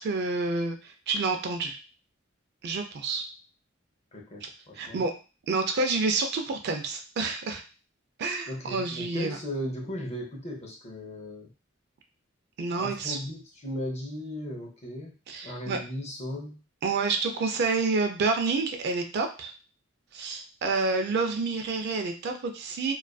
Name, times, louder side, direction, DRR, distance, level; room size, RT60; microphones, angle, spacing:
voice 1, 0.0-1.8 2.6-3.2 4.8-5.1 5.5-7.6 8.2-9.4 12.6-13.2 15.3-15.8 16.8-19.5 20.1-22.9, right 3 dB, 55° right, 5 dB, 0.4 m, -28 dB
voice 2, 4.1-5.0 8.5-11.5 12.7-15.1 15.4-16.6, equal, 35° left, 0 dB, 0.6 m, -37 dB
2.4 x 2.3 x 2.2 m, 0.34 s
head